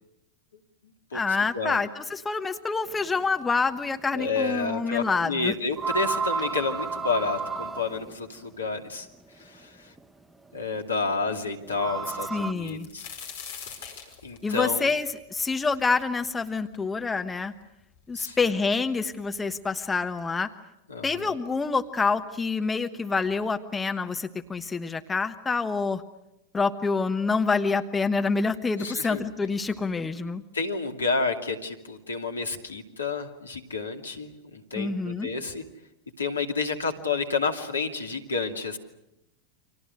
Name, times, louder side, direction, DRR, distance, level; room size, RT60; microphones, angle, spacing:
voice 1, 1.1-5.5 12.3-12.9 14.4-17.5 18.1-20.5 21.0-26.0 26.5-30.4 34.7-35.3, left 4 dB, 15° left, 8 dB, 1.2 m, -27 dB
sound 1, 4.0-4.1 5.7-8.1 10.0-10.1 11.7-12.5, right 5 dB, 5° right, 1.1 m, -31 dB
voice 2, 4.1-9.1 9.4-9.9 10.5-13.1 14.2-14.9 18.1-18.4 20.9-21.3 28.8-29.2 30.5-35.6 36.2-38.8, left 4 dB, 75° left, 4 dB, 2.5 m, -30 dB
sound 2, 12.4-16.2 16.7-16.8 17.6-17.7 18.0-18.6 19.5-19.6 20.0-20.2, left 7 dB, 55° left, 5.1 m, -42 dB
30.0 x 25.5 x 6.5 m, 0.87 s
figure-of-eight pair, 90°, 0 cm